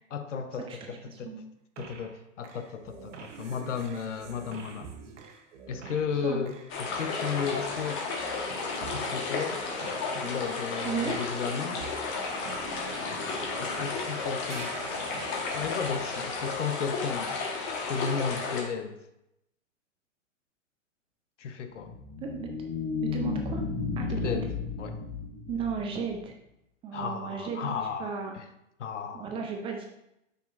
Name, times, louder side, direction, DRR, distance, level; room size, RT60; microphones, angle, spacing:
voice 1, 0.1-1.3 1.8-4.9 5.7-8.0 8.9-9.6 10.1-11.8 13.1-13.2 13.6-14.7 15.5-17.4 17.9-19.0 21.4-21.9 24.0-24.5 24.8-25.0 26.9-28.5 28.8-29.3, left 6 dB, 75° left, 8 dB, 0.9 m, -34 dB
voice 2, 0.7-1.4 6.2-6.4 10.8-11.2 22.2-22.5 23.0-23.6 24.0-24.4 25.5-26.3 26.8-28.3 29.1-29.9, right 6 dB, 15° right, 3 dB, 0.4 m, -34 dB
sound 1, 1.8-2.2 2.4-14.2 14.4-16.6, right 5 dB, 70° right, 1.2 m, -46 dB
sound 2, 6.7-18.6, left 4 dB, 35° left, 1.4 m, -33 dB
sound 3, 21.7-26.2, left 5 dB, 15° left, 0.8 m, -33 dB
7.3 x 5.6 x 2.5 m, 0.83 s
hypercardioid pair, 120°, 37 cm